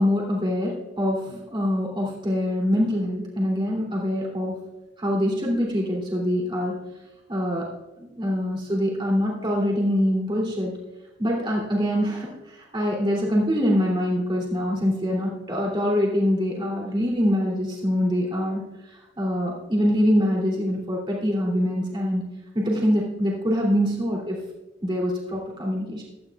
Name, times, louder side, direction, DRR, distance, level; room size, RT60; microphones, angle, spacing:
voice 1, 0.0-4.6 5.0-6.8 7.3-7.7 8.0-10.8 11.2-18.6 18.9-22.2 22.5-24.4 24.8-26.0, equal, 25° right, -3 dB, 2.8 m, -24 dB
16.5 x 12.5 x 2.4 m, 1.0 s
head